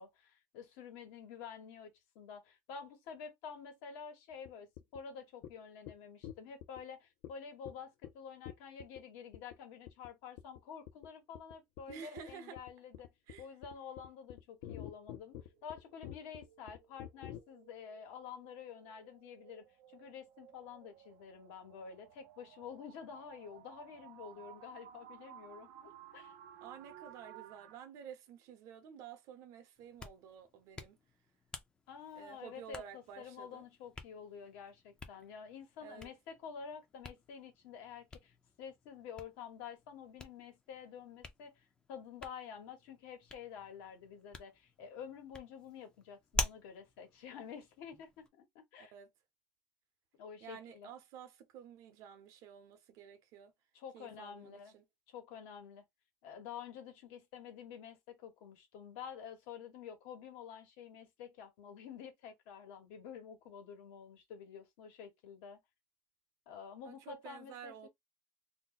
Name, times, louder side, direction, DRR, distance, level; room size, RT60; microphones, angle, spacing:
voice 1, 0.0-13.1 13.4-26.3 31.9-48.9 50.2-50.9 53.7-54.7 55.1-55.8 56.2-65.6 66.5-67.7, left 7 dB, 80° left, 1.3 m, -49 dB
sound 1, 4.5-4.6 4.8-5.0 5.4-5.5 5.9-6.0 6.2-6.8 7.2-7.3 7.7-7.8 8.0-8.1 8.5-9.0 9.3-9.6 9.9-10.1 10.4-10.6 10.9-11.1 11.3-17.4, left 12 dB, 65° left, 0.5 m, -47 dB
voice 2, 11.9-12.6 13.3-13.5 26.6-31.0 32.1-33.6 35.8-36.1 48.8-49.1 50.4-53.5 53.9-54.9 66.8-67.9, right 8 dB, 55° right, 0.7 m, -51 dB
sound 2, 14.6-27.8, right 11 dB, 90° right, 0.6 m, -58 dB
Hands, 29.8-48.3, left 3 dB, 15° left, 0.5 m, -48 dB
2.7 x 2.1 x 3.9 m
cardioid pair, 170°, 7 cm